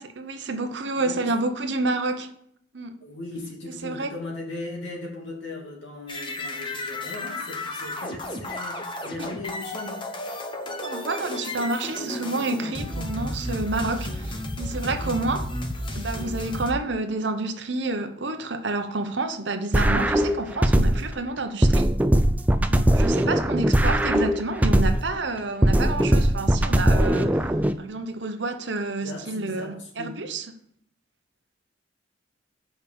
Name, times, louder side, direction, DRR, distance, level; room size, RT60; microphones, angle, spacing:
voice 1, 0.0-2.3 2.7-3.1 3.8-4.1 9.2-9.3 10.8-15.5 15.9-21.9 22.7-27.4 27.8-30.5, right 2 dB, 65° right, 0.9 m, -29 dB
voice 2, 0.9-1.3 3.0-10.1 29.0-30.1, left 2 dB, 75° left, 2.6 m, -38 dB
sound 1, 6.1-16.7, left 1 dB, 25° left, 0.9 m, -33 dB
sound 2, 19.7-21.2 21.6-25.2 25.6-27.7, right 1 dB, 10° right, 0.3 m, -20 dB
6.6 x 5.3 x 6.9 m
head